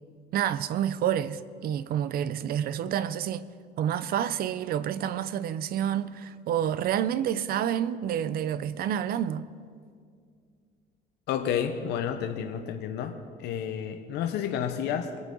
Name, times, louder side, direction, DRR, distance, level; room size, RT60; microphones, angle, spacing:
voice 1, 0.3-3.4 3.8-9.4, right 10 dB, 60° right, 0.6 m, -28 dB
voice 2, 11.3-15.1, left 8 dB, 80° left, 0.9 m, -30 dB
23.5 x 8.8 x 3.8 m
cardioid pair, 110°, 17 cm